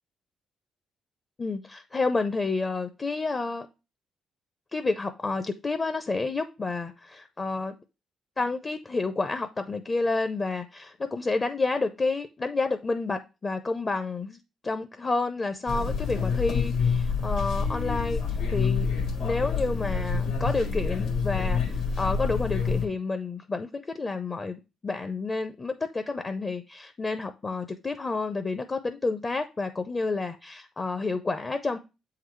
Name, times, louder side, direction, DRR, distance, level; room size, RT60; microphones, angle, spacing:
voice 1, 1.4-3.7 4.7-7.8 8.4-18.9 19.2-31.8, left 3 dB, 30° left, 0.5 m, -30 dB
sound 1, 15.7-22.9, left 5 dB, 75° left, 1.5 m, -27 dB
7.6 x 3.9 x 3.2 m
cardioid pair, 90°, 0 cm